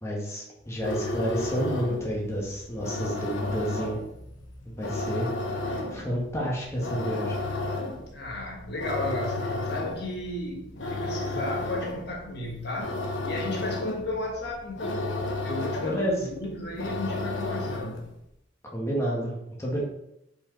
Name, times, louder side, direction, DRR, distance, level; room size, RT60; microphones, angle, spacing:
voice 1, 0.0-4.0 4.8-5.3 5.6-7.4 15.8-16.3 18.7-19.3 19.6-19.8, equal, 15° left, -3 dB, 1.5 m, -30 dB
sound 1, 0.7-18.1, left 2 dB, 80° left, 1.1 m, -33 dB
voice 2, 8.1-13.0 13.2-15.0 15.4-18.0, left 2 dB, 60° left, -1 dB, 1.3 m, -34 dB
5.5 x 5.0 x 4.5 m, 0.81 s
head